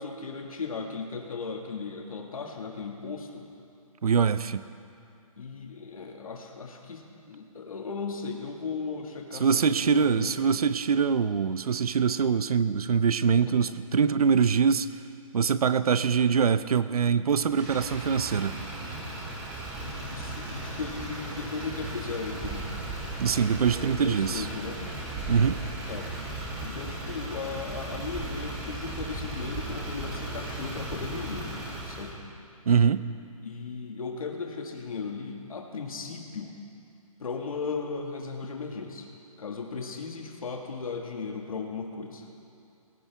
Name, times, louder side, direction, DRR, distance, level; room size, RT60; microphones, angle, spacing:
voice 1, 0.0-3.5 5.4-10.6 19.8-22.7 23.7-24.8 25.9-26.1 26.6-31.5 31.8-32.2 33.4-36.6 37.2-39.1 39.4-42.3, left 5 dB, 75° left, 2 dB, 1.9 m, -36 dB
voice 2, 4.0-4.6 9.4-14.9 15.3-18.6 23.2-24.5 25.3-25.6 32.7-33.0, right 6 dB, 90° right, 14 dB, 0.6 m, -24 dB
Motor vehicle (road), 17.5-32.1, right 2 dB, 5° right, 0.7 m, -36 dB
19.0 x 17.0 x 3.5 m, 2.6 s
hypercardioid pair, 175°, 18 cm